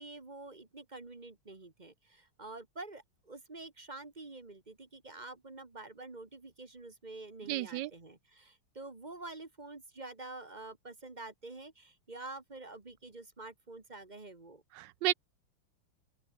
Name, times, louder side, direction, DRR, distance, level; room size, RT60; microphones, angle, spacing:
voice 1, 0.0-14.6, right 2 dB, 25° right, 1.6 m, -47 dB
voice 2, 7.5-7.9 14.8-15.1, right 16 dB, 75° right, 1.1 m, -32 dB
open air
omnidirectional pair, 2.2 m